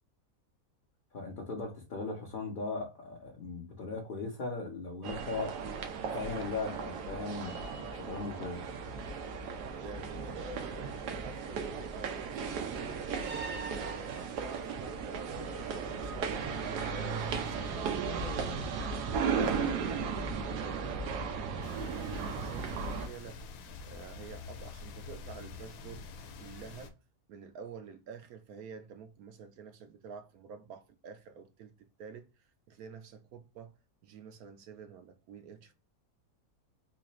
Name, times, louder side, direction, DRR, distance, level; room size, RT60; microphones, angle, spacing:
voice 1, 1.1-5.5 6.1-8.7, left 3 dB, 40° left, 0.8 m, -38 dB
sound 1, 5.0-23.1, right 5 dB, 90° right, 1.2 m, -36 dB
voice 2, 9.6-13.1 13.5-16.4 16.8-19.9 20.5-23.4 23.8-26.1 26.4-26.9 27.3-32.3 32.7-33.7 34.0-35.7, right 5 dB, 70° right, 1.0 m, -48 dB
sound 2, 21.6-26.9, left 5 dB, 85° left, 1.2 m, -47 dB
4.0 x 2.5 x 2.9 m
omnidirectional pair, 1.7 m